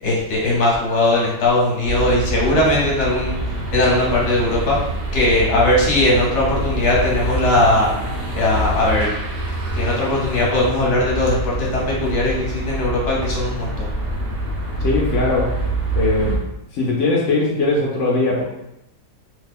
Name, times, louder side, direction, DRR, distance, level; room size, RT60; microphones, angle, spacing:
voice 1, 0.0-3.4 3.7-4.8 5.1-7.9 8.3-9.1 9.7-13.9, left 1 dB, 50° left, -4 dB, 1.0 m, -19 dB
sound 1, 1.8-16.4, right 1 dB, 65° right, 0.5 m, -25 dB
voice 2, 14.8-15.5 16.0-16.4 16.7-18.4, left 2 dB, 70° left, -3 dB, 0.7 m, -20 dB
2.8 x 2.1 x 3.5 m, 0.86 s
omnidirectional pair, 1.8 m